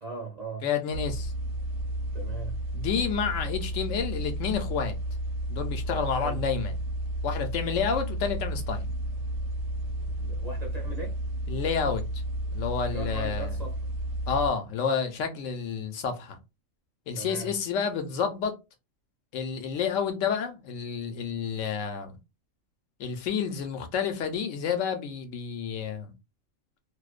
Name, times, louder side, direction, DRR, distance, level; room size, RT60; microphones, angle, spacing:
voice 1, 0.0-0.7 2.1-2.6 6.2-6.4 10.2-11.2 12.8-13.9 17.1-17.5, right 3 dB, 40° right, 0.7 m, -39 dB
voice 2, 0.6-1.3 2.7-5.0 5.5-6.8 7.2-8.9 11.5-12.0 12.5-13.6 14.3-16.4 17.1-18.5 19.3-22.2 23.0-26.1, left 6 dB, 75° left, 0.9 m, -29 dB
sound 1, 0.9-14.5, right 1 dB, 70° right, 0.9 m, -32 dB
2.5 x 2.1 x 2.3 m
omnidirectional pair, 1.3 m